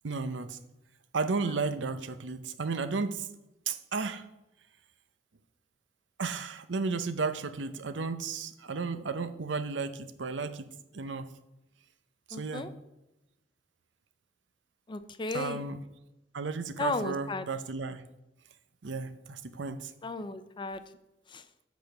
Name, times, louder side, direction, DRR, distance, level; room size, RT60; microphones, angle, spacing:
voice 1, 0.0-0.6 1.1-3.3 3.7-4.2 6.2-10.7 10.9-11.3 12.3-12.7 15.3-15.8 16.3-18.0 18.8-19.9, right 4 dB, 80° right, 11 dB, 0.7 m, -33 dB
voice 2, 12.3-12.7 14.9-15.6 16.8-17.5 20.0-20.8 21.3-21.4, left 3 dB, 25° left, 11 dB, 0.5 m, -35 dB
8.1 x 5.0 x 6.7 m, 0.92 s
head